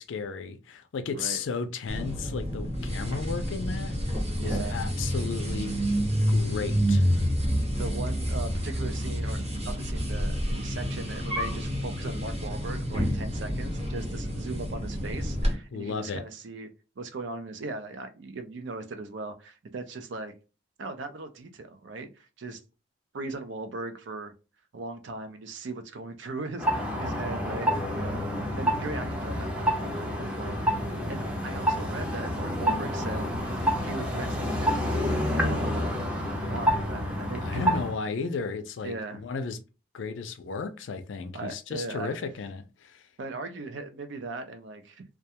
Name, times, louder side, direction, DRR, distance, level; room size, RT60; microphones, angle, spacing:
voice 1, 0.0-5.7 6.3-7.1 15.7-16.2 37.4-39.6 39.9-43.0, left 5 dB, 75° left, 0.4 m, -34 dB
sound 1, 1.9-15.5, equal, 30° right, 0.8 m, -28 dB
voice 2, 4.3-4.8 7.8-16.7 17.0-20.3 20.8-22.6 23.1-24.3 24.7-28.3 28.6-30.6 31.1-36.0 36.4-37.8 38.8-39.2 41.3-42.1 43.2-45.0, right 3 dB, 70° right, 0.5 m, -39 dB
sound 2, 26.6-38.0, equal, 5° right, 0.5 m, -28 dB
2.3 x 2.2 x 2.8 m
head